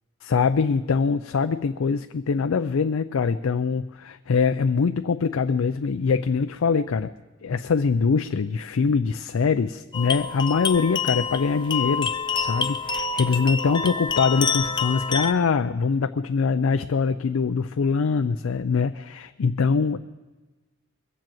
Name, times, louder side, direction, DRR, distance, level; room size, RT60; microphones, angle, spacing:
voice 1, 0.2-7.1 7.4-12.1 12.4-20.0, left 5 dB, 85° left, 9 dB, 0.4 m, -23 dB
sound 1, 9.9-15.3, left 5 dB, 20° left, 0.5 m, -27 dB
22.5 x 7.5 x 7.7 m, 1.2 s
head